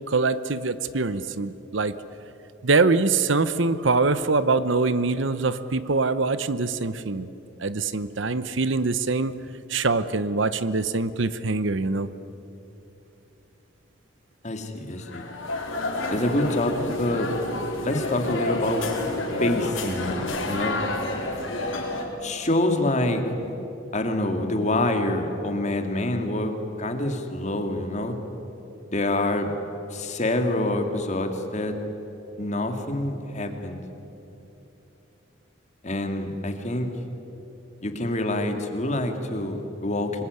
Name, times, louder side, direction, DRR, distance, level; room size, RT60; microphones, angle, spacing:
voice 1, 0.1-1.9 2.6-7.3 7.6-9.4 9.7-12.1, right 3 dB, 65° right, 14 dB, 0.9 m, -24 dB
voice 2, 14.4-15.2 16.1-17.3 17.8-18.9 19.4-20.8 22.2-23.5 23.9-28.2 28.9-29.6 29.9-31.8 32.4-33.8 35.8-36.9 37.8-40.2, left 1 dB, 35° left, 5 dB, 2.4 m, -26 dB
sound 1, 15.0-22.0, left 2 dB, 75° left, 4.8 m, -30 dB
26.0 x 21.5 x 9.6 m, 3.0 s
head